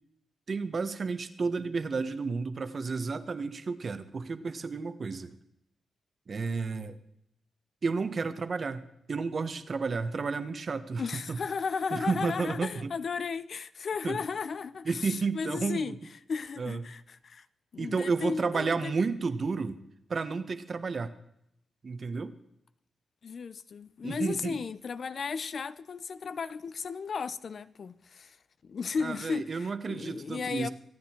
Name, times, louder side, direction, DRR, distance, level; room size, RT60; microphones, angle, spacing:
voice 1, 0.5-5.3 6.3-6.9 7.8-8.8 9.1-11.0 11.3-11.4 11.9-12.9 14.0-14.2 14.9-15.9 16.6-16.8 17.8-19.8 20.1-21.1 21.8-22.3 24.0-24.5 29.0-30.7, right 4 dB, 50° right, 1.3 m, -31 dB
voice 2, 11.0-16.0 16.3-17.5 17.7-18.9 23.2-28.4 28.6-30.7, left 5 dB, 55° left, 0.7 m, -35 dB
25.0 x 9.4 x 4.6 m
cardioid pair, 85°, 0 cm